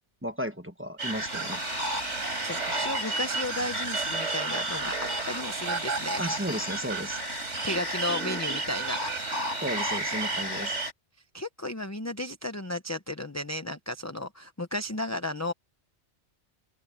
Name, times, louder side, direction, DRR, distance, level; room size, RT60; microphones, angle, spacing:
voice 1, 0.2-1.6 3.1-3.2 6.2-7.2 9.6-10.8, equal, 10° right, 1.3 m, -34 dB
sound 1, 1.0-10.9, right 2 dB, 90° right, 4.9 m, -31 dB
voice 2, 2.4-4.9 5.3-6.3 7.5-9.2 11.3-15.5, left 1 dB, 15° left, 0.8 m, -34 dB
open air
omnidirectional pair, 1.2 m